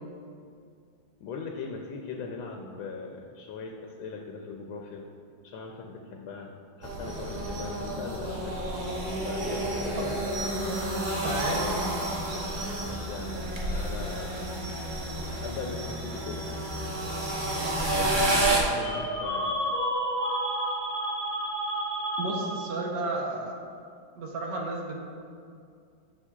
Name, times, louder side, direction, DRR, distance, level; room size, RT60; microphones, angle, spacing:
voice 1, 1.2-5.0 5.4-6.5 6.8-8.6 9.2-10.2 12.8-14.5 15.4-16.5 18.0-19.5, left 4 dB, 80° left, 1 dB, 1.4 m, -39 dB
sound 1, 6.8-18.6, right 1 dB, 80° right, 0.4 m, -30 dB
voice 2, 11.2-11.7 22.2-23.6 24.2-24.9, right 2 dB, 65° right, 0 dB, 1.4 m, -32 dB
sound 2, 18.8-22.9, right 1 dB, 15° left, 1.2 m, -30 dB
9.8 x 6.2 x 2.4 m, 2.3 s
omnidirectional pair, 2.2 m